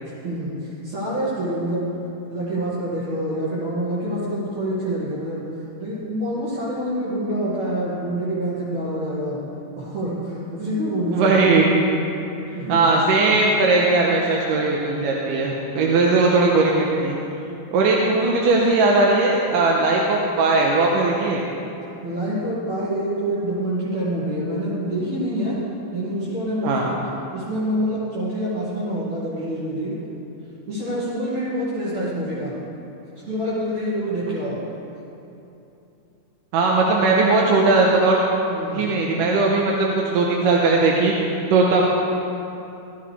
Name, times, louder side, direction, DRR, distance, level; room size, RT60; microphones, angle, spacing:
voice 1, 0.2-1.9 2.3-5.4 5.8-9.4 9.8-11.4 12.5-12.9 22.0-25.6 25.9-30.0 30.7-32.5 33.3-34.6 38.5-38.8, equal, 60° right, -10 dB, 3.4 m, -26 dB
voice 2, 11.1-11.8 12.7-17.2 17.7-21.4 26.6-26.9 36.5-38.2 38.7-41.1 41.5-41.9, right 3 dB, 90° right, -2 dB, 2.6 m, -18 dB
16.0 x 12.5 x 3.3 m, 2.9 s
omnidirectional pair, 3.7 m